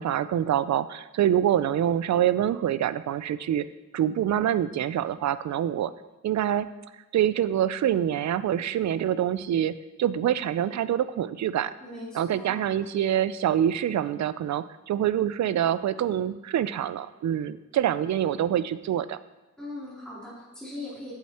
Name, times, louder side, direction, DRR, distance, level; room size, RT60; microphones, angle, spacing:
voice 1, 0.0-3.7 3.9-5.9 6.2-6.7 7.1-11.7 12.1-19.2, right 10 dB, 70° right, 15 dB, 0.4 m, -25 dB
voice 2, 11.8-12.6 19.6-21.1, left 2 dB, 5° left, -9 dB, 3.0 m, -40 dB
7.6 x 7.4 x 4.3 m, 1.1 s
wide cardioid pair, 105°, 29 cm